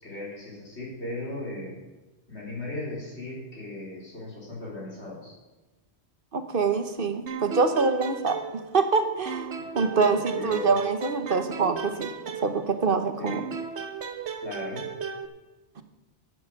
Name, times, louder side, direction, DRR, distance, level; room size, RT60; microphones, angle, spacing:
voice 1, 0.0-1.8 2.3-5.4 9.5-10.7 13.2-13.4 14.4-14.8, left 2 dB, 75° left, -4 dB, 4.5 m, -37 dB
voice 2, 6.3-9.5 9.7-12.1 12.4-13.4, right 4 dB, 55° right, 8 dB, 1.1 m, -25 dB
sound 1, 7.3-8.9 9.3-12.9 13.3-15.3, right 6 dB, 75° right, 1.3 m, -35 dB
11.5 x 8.5 x 6.4 m, 1.1 s
omnidirectional pair, 1.1 m